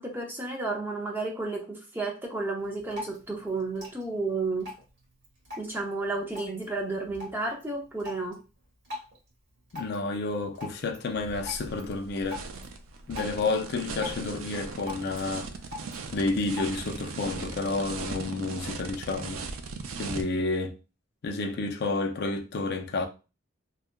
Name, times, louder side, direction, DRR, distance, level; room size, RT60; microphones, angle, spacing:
voice 1, 0.0-4.7 5.6-8.4, right 3 dB, 10° right, 0.5 m, -32 dB
Drip, 2.6-17.1, left 2 dB, 55° right, 1.4 m, -45 dB
voice 2, 9.7-12.4 13.1-15.5 16.1-19.4 20.0-20.7 21.2-23.1, left 3 dB, 55° left, 0.4 m, -30 dB
sound 1, 11.1-20.2, right 4 dB, 80° right, 0.4 m, -39 dB
2.7 x 2.2 x 2.2 m
head